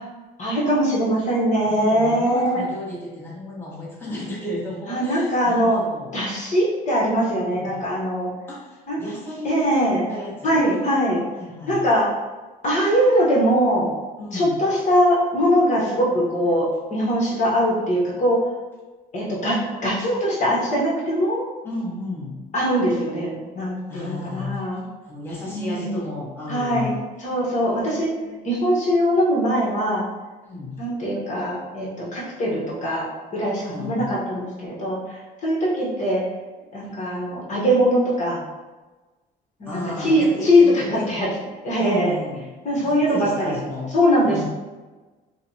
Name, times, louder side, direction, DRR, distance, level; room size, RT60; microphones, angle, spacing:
voice 1, 0.4-2.6 4.9-5.8 6.1-8.3 8.9-9.0 9.4-10.1 10.4-11.2 11.7-12.1 12.6-13.9 14.3-18.4 19.1-21.4 22.5-24.8 25.4-26.0 26.5-26.9 27.2-28.1 28.4-30.0 30.8-33.1 33.3-36.2 36.7-38.4 39.6-41.3 41.6-42.2 42.6-43.5 43.9-44.5, equal, 45° left, -5 dB, 1.1 m, -21 dB
voice 2, 1.7-6.1 7.3-7.8 8.5-11.8 14.2-14.6 21.6-22.4 23.9-24.7 25.0-27.0 27.6-28.5 30.4-30.8 33.6-34.1 39.6-41.1 41.8-42.5 42.8-43.9 44.2-44.5, left 2 dB, 15° left, -6 dB, 1.1 m, -33 dB
4.9 x 2.1 x 2.8 m, 1.2 s
cardioid pair, 110°, 17 cm